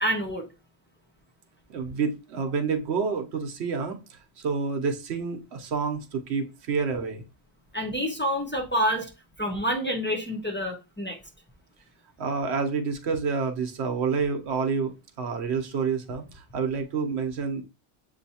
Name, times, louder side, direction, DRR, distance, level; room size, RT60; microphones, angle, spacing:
voice 1, 0.0-0.5 7.7-9.1 9.4-11.2, equal, 15° left, 0.5 m, -27 dB
voice 2, 1.7-7.2 12.2-17.6, right 5 dB, 80° right, 1.0 m, -28 dB
7.1 x 2.7 x 2.8 m
omnidirectional pair, 1.1 m